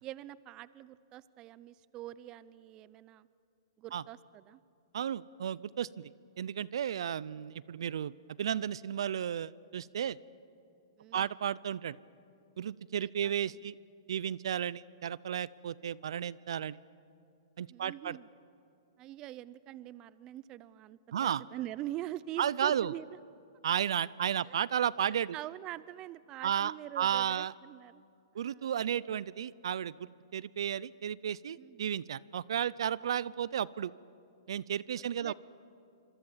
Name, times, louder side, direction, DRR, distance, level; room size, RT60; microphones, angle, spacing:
voice 1, 0.0-3.3 3.8-4.6 11.0-11.3 13.0-13.6 17.7-18.3 19.0-23.2 24.5-24.6 25.3-28.0 28.4-28.7 31.6-31.8 35.0-35.3, right 14 dB, 25° right, 19 dB, 0.5 m, -44 dB
voice 2, 4.9-6.1 6.4-10.2 11.1-12.0 12.6-13.8 14.1-16.8 17.6-18.2 21.1-21.4 22.4-22.9 23.6-25.4 26.4-27.5 28.3-33.9 34.5-35.3, right 9 dB, 70° right, 21 dB, 0.5 m, -33 dB
25.5 x 25.0 x 7.4 m, 2.6 s
hypercardioid pair, 150°, 3 cm